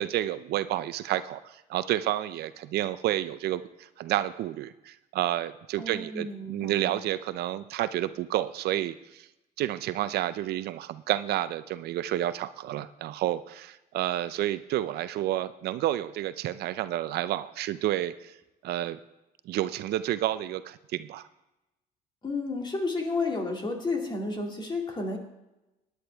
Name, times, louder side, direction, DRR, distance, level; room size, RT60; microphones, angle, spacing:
voice 1, 0.0-9.3 9.6-18.3 18.6-19.0 19.5-21.2, right 13 dB, 70° right, 14 dB, 0.5 m, -30 dB
voice 2, 5.8-7.0 22.2-25.2, left 3 dB, 25° left, 1 dB, 2.4 m, -31 dB
17.0 x 10.0 x 3.4 m, 0.98 s
cardioid pair, 110°, 17 cm